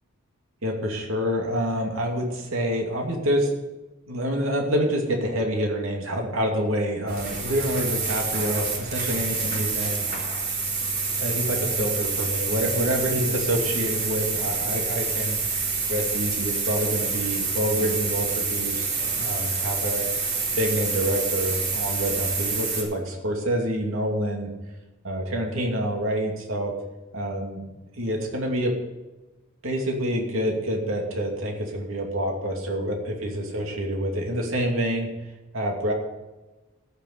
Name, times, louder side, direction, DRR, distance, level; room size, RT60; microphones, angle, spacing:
voice 1, 0.6-3.5 4.1-10.1 11.2-15.4 15.9-20.1 20.6-24.5 25.0-26.7 27.1-27.6 28.0-28.7 29.6-35.1 35.5-35.9, equal, 75° right, 1 dB, 2.7 m, -27 dB
sound 1, 7.1-22.8, right 4 dB, 50° right, 3.8 m, -27 dB
15.0 x 7.0 x 6.8 m, 1.1 s
head